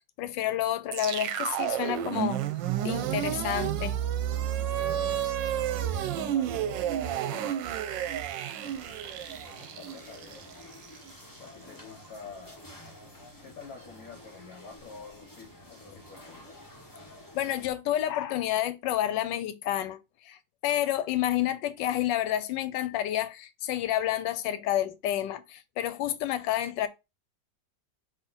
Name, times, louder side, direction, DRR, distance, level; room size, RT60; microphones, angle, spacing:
voice 1, 0.2-2.4 2.8-4.0 17.3-20.0 20.2-26.9, left 12 dB, 80° left, 1.2 m, -29 dB
sound 1, 0.9-11.1, right 10 dB, 85° right, 1.3 m, -31 dB
voice 2, 4.7-5.3 5.7-7.6 8.6-8.8 9.3-10.5 11.3-12.6 13.4-16.6, left 5 dB, 60° left, 1.2 m, -48 dB
sound 2, 8.6-17.7, left 1 dB, 15° left, 0.7 m, -50 dB
4.2 x 3.0 x 3.8 m
omnidirectional pair, 2.0 m